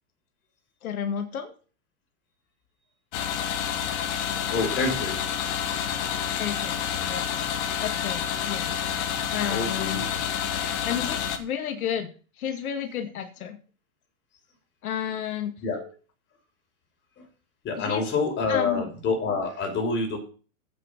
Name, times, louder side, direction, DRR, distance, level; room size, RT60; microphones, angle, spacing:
voice 1, 0.8-1.5 6.4-6.8 7.0-7.4 7.8-8.7 9.3-10.0 10.8-12.1 12.4-13.6 14.8-15.5 17.8-18.1 18.5-18.9, left 9 dB, 85° left, 6 dB, 2.3 m, -31 dB
sound 1, 3.1-11.4, left 8 dB, 55° left, 2.4 m, -29 dB
voice 2, 4.4-5.2 9.5-10.1 15.6-15.9 17.2-17.3 17.6-20.2, left 4 dB, 25° left, 3 dB, 5.1 m, -27 dB
8.8 x 8.6 x 6.7 m, 0.37 s
supercardioid pair, 140°, 42 cm